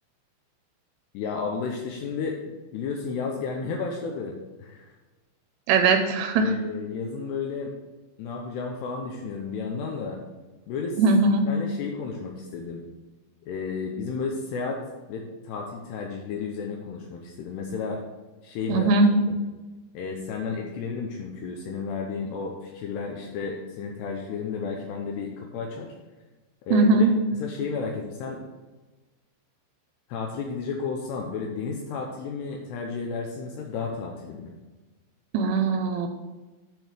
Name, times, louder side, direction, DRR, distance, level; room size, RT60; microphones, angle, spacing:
voice 1, 1.1-2.4 2.7-5.0 6.4-7.7 8.2-10.2 10.7-11.0 11.5-12.8 13.5-14.8 15.1-18.0 18.4-18.9 19.3-19.4 19.9-25.9 26.6-26.9 27.4-28.4 30.1-34.5, left 5 dB, 75° left, 1 dB, 2.8 m, -32 dB
voice 2, 5.7-6.5 11.0-11.5 18.7-19.1 26.7-27.1 35.3-36.1, right 3 dB, 80° right, 6 dB, 2.7 m, -20 dB
9.2 x 5.3 x 6.7 m, 1.2 s
omnidirectional pair, 5.3 m